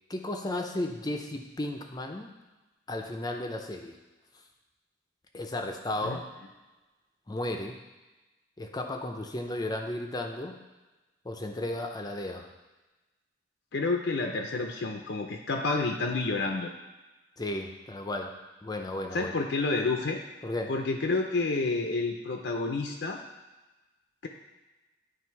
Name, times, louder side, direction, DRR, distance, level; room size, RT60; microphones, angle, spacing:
voice 1, 0.1-2.3 2.9-4.0 5.3-6.2 7.3-7.8 8.6-10.6 11.2-12.5 17.4-18.3 18.6-19.3 20.4-20.7, left 1 dB, 20° left, 3 dB, 0.5 m, -34 dB
voice 2, 13.7-16.7 19.1-20.2 20.7-23.2 24.2-24.3, left 3 dB, 70° left, 3 dB, 0.6 m, -29 dB
9.5 x 3.3 x 4.6 m, 1.1 s
head